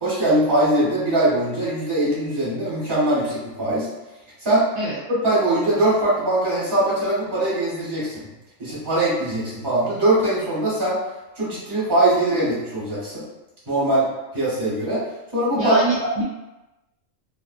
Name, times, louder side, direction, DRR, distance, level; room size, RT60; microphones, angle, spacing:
voice 1, 0.0-3.9 4.4-4.7 5.1-8.3 8.6-11.0 11.4-13.2 13.7-14.1 14.3-15.0 15.3-15.8, right 1 dB, 20° right, -8 dB, 1.0 m, -21 dB
voice 2, 15.6-16.2, right 2 dB, 65° right, -6 dB, 0.8 m, -25 dB
2.4 x 2.4 x 2.4 m, 1.0 s
omnidirectional pair, 1.4 m